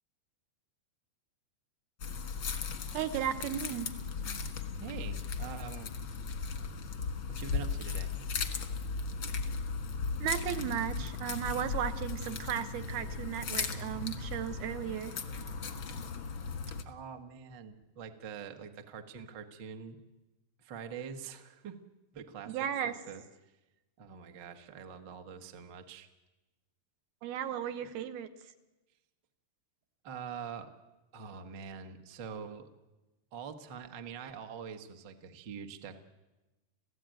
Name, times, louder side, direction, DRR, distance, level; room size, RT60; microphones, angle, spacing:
sound 1, 2.0-16.8, left 5 dB, 60° left, 1.3 m, -37 dB
voice 1, 2.9-3.9 10.2-15.1 22.5-22.9 27.2-28.3, right 10 dB, 75° right, 9 dB, 2.8 m, -35 dB
voice 2, 4.8-6.0 7.4-8.1 16.8-20.0 20.6-21.8 22.1-22.6 22.8-23.2 24.0-26.1 27.8-27.9 30.0-30.7 31.1-32.7 33.3-36.0, right 7 dB, 60° right, 6 dB, 1.2 m, -44 dB
27.5 x 16.0 x 9.2 m, 1.1 s
omnidirectional pair, 4.6 m